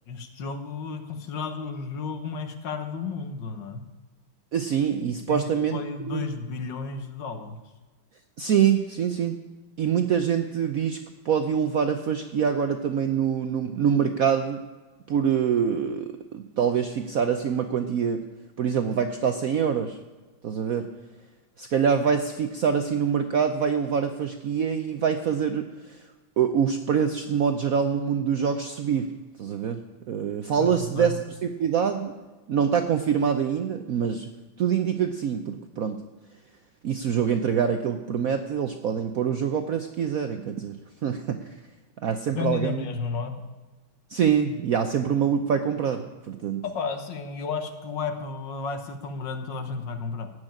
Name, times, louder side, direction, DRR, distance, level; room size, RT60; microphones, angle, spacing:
voice 1, 0.1-3.8 5.3-7.6 30.6-31.2 42.3-43.4 46.6-50.3, left 5 dB, 65° left, 7 dB, 1.8 m, -32 dB
voice 2, 4.5-5.8 6.1-6.2 8.4-9.4 9.8-11.0 11.2-14.6 15.1-18.2 18.6-20.0 20.4-20.9 21.6-25.7 26.4-29.1 29.4-29.8 30.1-31.1 31.4-32.1 32.5-34.3 34.6-36.0 36.8-41.4 42.0-42.8 44.1-46.6, right 7 dB, 65° right, 7 dB, 0.8 m, -25 dB
17.0 x 6.4 x 8.7 m, 1.3 s
omnidirectional pair, 2.2 m